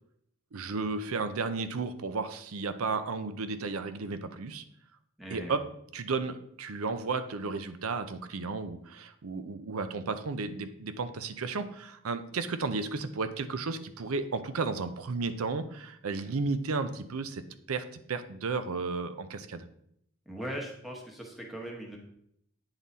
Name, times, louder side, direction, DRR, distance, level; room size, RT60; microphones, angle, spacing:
voice 1, 0.5-4.6 5.3-5.6 5.9-19.7, right 4 dB, 80° right, 11 dB, 0.6 m, -33 dB
voice 2, 5.2-5.5 20.3-22.0, right 1 dB, ahead, 0 dB, 1.1 m, -39 dB
8.9 x 3.9 x 4.1 m, 0.71 s
head